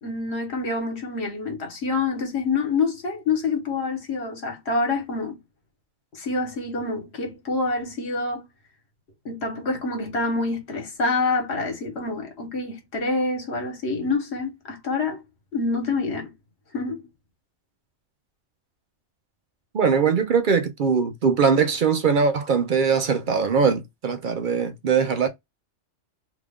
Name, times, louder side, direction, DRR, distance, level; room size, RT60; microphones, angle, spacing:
voice 1, 0.0-5.4 6.1-8.4 9.2-15.2 15.5-16.3 16.7-17.0, left 3 dB, 65° left, 1.4 m, -27 dB
voice 2, 19.7-25.3, right 6 dB, 55° right, 0.6 m, -21 dB
2.9 x 2.4 x 3.4 m
omnidirectional pair, 1.2 m